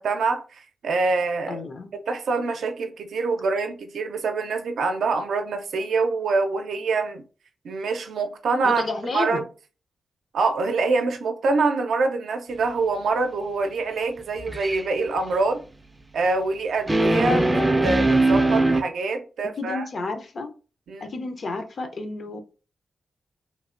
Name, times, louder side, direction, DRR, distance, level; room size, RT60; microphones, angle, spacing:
voice 1, 0.0-1.6 2.1-7.2 7.6-8.8 9.1-9.4 10.3-15.6 16.1-19.8 20.9-21.1, right 3 dB, 85° right, 0.4 m, -25 dB
voice 2, 1.5-1.9 8.6-9.4 19.6-20.5 21.0-22.4, left 3 dB, 55° left, 0.5 m, -31 dB
sound 1, 14.4-14.8 16.9-18.8, right 2 dB, 15° right, 0.4 m, -20 dB
3.0 x 2.1 x 2.4 m
cardioid pair, 80°, 0 cm